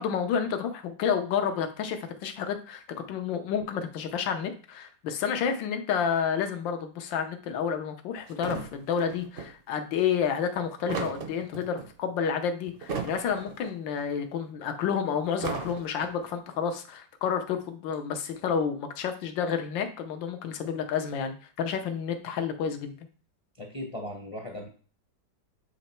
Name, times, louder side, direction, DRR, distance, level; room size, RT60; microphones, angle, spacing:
voice 1, 0.0-2.8 3.1-23.0, left 7 dB, 85° left, 6 dB, 1.5 m, -30 dB
sound 1, 8.3-9.5 10.5-11.9 12.7-13.7 14.0-14.1 15.2-16.3, right 4 dB, 50° right, 0.7 m, -36 dB
voice 2, 23.6-24.7, left 1 dB, 35° left, 2 dB, 0.5 m, -37 dB
7.8 x 3.0 x 4.4 m, 0.39 s
omnidirectional pair, 2.0 m